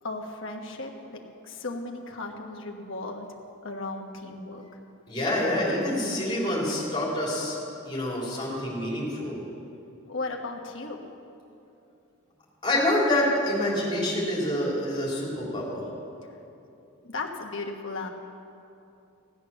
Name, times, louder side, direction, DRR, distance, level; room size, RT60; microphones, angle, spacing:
voice 1, 0.0-4.6 10.1-11.0 16.2-16.4 17.0-18.1, left 3 dB, 60° left, 2 dB, 1.4 m, -36 dB
voice 2, 5.1-7.6 7.8-9.4 12.6-15.9, left 1 dB, 20° left, -5 dB, 3.5 m, -27 dB
16.0 x 9.0 x 6.9 m, 2.8 s
head